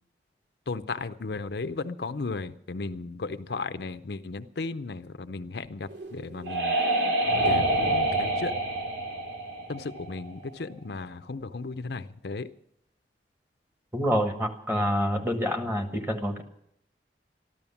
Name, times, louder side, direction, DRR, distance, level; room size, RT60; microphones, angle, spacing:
voice 1, 0.7-6.8 7.4-8.5 9.7-12.5, left 3 dB, 65° left, 11 dB, 0.6 m, -35 dB
sound 1, 5.9-10.5, right 1 dB, 85° right, 2.5 m, -27 dB
voice 2, 13.9-16.4, equal, 10° right, 5 dB, 1.4 m, -27 dB
13.5 x 12.5 x 7.1 m, 0.75 s
head